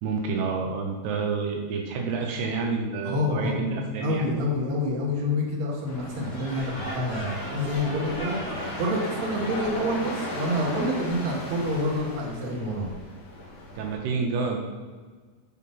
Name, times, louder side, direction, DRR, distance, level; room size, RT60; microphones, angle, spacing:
voice 1, 0.0-4.3 13.8-14.6, right 4 dB, 80° right, 1 dB, 2.6 m, -29 dB
voice 2, 3.0-8.4 8.8-12.9, left 1 dB, 60° right, -3 dB, 1.9 m, -27 dB
sound 1, 5.9-14.0, left 1 dB, 70° left, 3.1 m, -37 dB
sound 2, 6.2-10.8, equal, 40° left, 2.7 m, -39 dB
7.5 x 3.9 x 5.4 m, 1.4 s
omnidirectional pair, 4.8 m